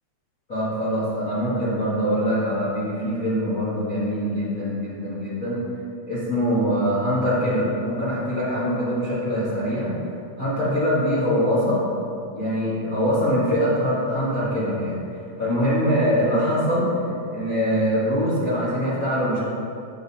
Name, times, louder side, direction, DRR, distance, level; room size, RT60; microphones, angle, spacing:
voice 1, 0.5-5.6 6.1-9.9 10.4-11.8 12.3-15.0 15.4-16.9 17.3-19.4, equal, 50° left, -11 dB, 1.0 m, -23 dB
9.3 x 6.5 x 2.8 m, 2.5 s
omnidirectional pair, 4.0 m